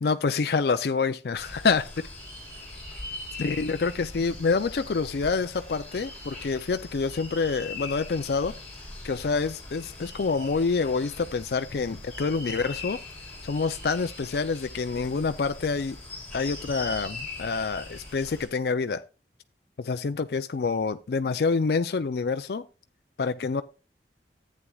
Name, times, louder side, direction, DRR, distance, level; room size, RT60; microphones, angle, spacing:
voice 1, 0.0-1.9 3.4-8.5 9.0-13.0 13.4-16.0 16.3-19.0 19.8-22.6 23.2-23.6, left 4 dB, 60° left, 0.4 m, -27 dB
sound 1, 1.4-18.5, left 2 dB, 10° left, 4.3 m, -41 dB
14.0 x 8.5 x 2.3 m
head